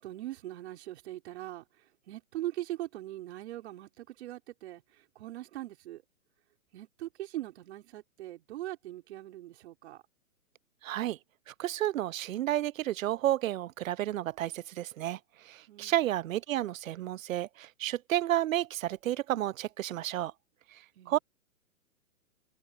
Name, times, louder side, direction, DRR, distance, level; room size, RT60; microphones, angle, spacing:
voice 1, 0.0-6.0 6.7-10.0 15.7-16.0 20.9-21.2, right 15 dB, 50° right, 5.0 m, -41 dB
voice 2, 10.8-11.2 11.5-15.2 15.5-20.3 21.1-21.2, right 13 dB, 70° right, 0.5 m, -31 dB
hypercardioid pair, 145°, 42 cm